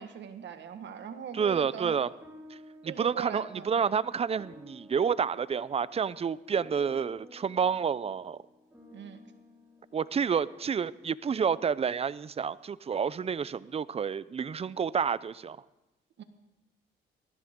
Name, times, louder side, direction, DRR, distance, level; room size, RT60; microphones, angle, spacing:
voice 1, 0.0-2.0 2.8-3.7 8.9-9.2 16.2-16.3, right 8 dB, 65° right, 8 dB, 1.5 m, -40 dB
voice 2, 1.3-2.1 2.8-8.4 9.9-15.6, right 6 dB, 30° right, 18 dB, 0.5 m, -29 dB
sound 1, 2.2-10.9, equal, 10° right, 3.6 m, -54 dB
19.5 x 13.5 x 3.7 m, 0.99 s
cardioid pair, 90°, 20 cm